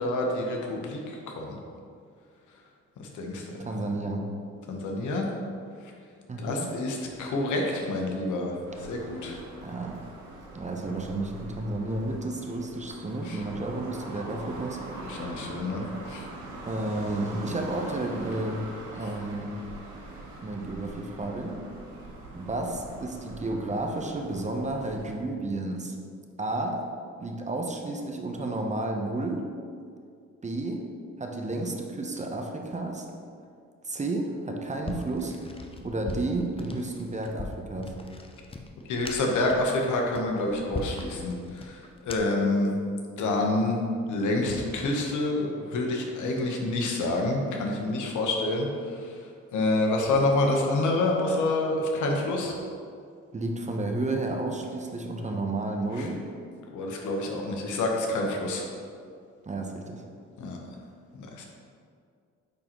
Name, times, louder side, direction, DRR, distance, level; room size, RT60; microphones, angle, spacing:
voice 1, 0.0-1.6 3.0-3.6 4.7-5.3 6.4-9.4 13.3-13.4 15.0-16.3 38.9-42.7 43.2-43.8 44.1-49.1 49.5-52.5 56.0-56.1 56.7-58.6 60.4-60.6 61.2-61.4, left 2 dB, 80° left, 1 dB, 1.1 m, -28 dB
voice 2, 3.6-4.3 6.3-6.7 9.6-10.0 10.5-14.8 16.7-18.6 18.9-19.5 20.4-21.6 22.3-26.0 26.4-26.8 27.2-29.4 30.4-30.8 31.2-33.1 33.8-35.4 35.8-38.0 53.3-56.2 59.5-60.0, right 2 dB, 25° right, 2 dB, 0.7 m, -31 dB
sound 1, 8.6-25.0, right 2 dB, 85° right, 1.3 m, -43 dB
sound 2, 34.8-42.5, left 3 dB, 20° left, 0.5 m, -40 dB
8.7 x 3.9 x 3.0 m, 2.3 s
cardioid pair, 90°, 30 cm